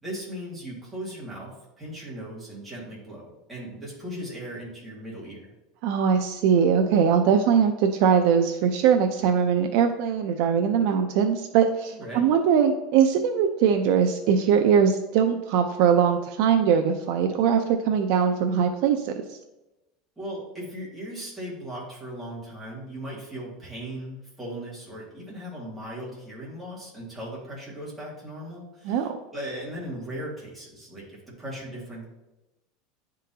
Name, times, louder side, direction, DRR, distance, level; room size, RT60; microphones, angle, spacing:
voice 1, 0.0-5.5 11.9-12.3 20.2-32.0, equal, 5° right, -6 dB, 1.8 m, -38 dB
voice 2, 5.8-19.4 28.8-29.2, right 7 dB, 50° right, 6 dB, 0.4 m, -21 dB
10.0 x 3.7 x 2.8 m, 0.99 s
supercardioid pair, 170°, 0 cm